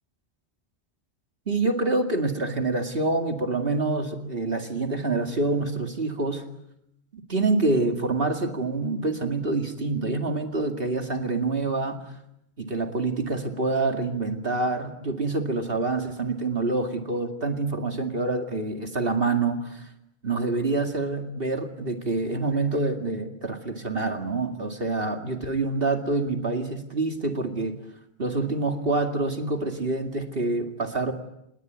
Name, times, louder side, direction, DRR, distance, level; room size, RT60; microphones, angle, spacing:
voice 1, 1.5-6.4 7.1-12.0 12.6-19.9 20.2-27.8 28.2-31.1, right 3 dB, 55° right, 4 dB, 2.5 m, -26 dB
28.0 x 20.0 x 9.3 m, 0.83 s
omnidirectional pair, 1.1 m